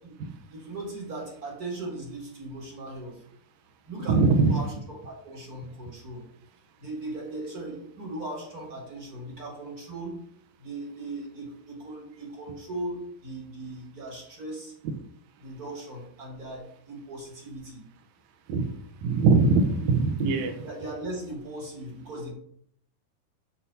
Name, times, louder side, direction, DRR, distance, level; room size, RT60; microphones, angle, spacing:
voice 1, 0.5-3.2 3.8-6.3 6.8-10.2 10.6-14.7 15.4-17.8 20.6-22.3, right 2 dB, 40° right, -1 dB, 1.3 m, -38 dB
voice 2, 4.1-4.5 18.5-18.7 19.0-20.6, right 4 dB, 75° right, 3 dB, 1.7 m, -21 dB
8.0 x 4.1 x 6.9 m, 0.66 s
omnidirectional pair, 4.6 m